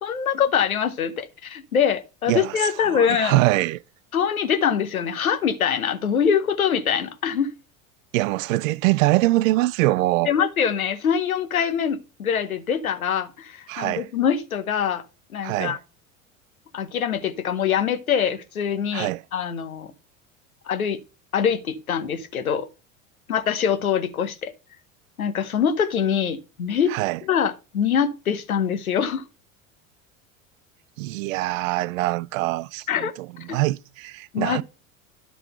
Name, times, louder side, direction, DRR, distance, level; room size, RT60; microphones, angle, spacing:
voice 1, 0.0-3.4 4.1-7.5 10.3-15.0 15.3-15.8 16.7-19.9 20.7-21.0 21.3-22.7 23.3-24.5 25.2-26.9 27.2-29.2 32.9-33.1 33.5-33.6 34.3-34.6, left 8 dB, 90° left, 1.0 m, -24 dB
voice 2, 2.3-3.8 8.1-10.3 13.7-14.1 15.4-15.8 18.9-19.2 26.9-27.2 31.0-34.6, right 18 dB, 70° right, 0.5 m, -23 dB
11.0 x 3.9 x 6.5 m
hypercardioid pair, 75°, 41 cm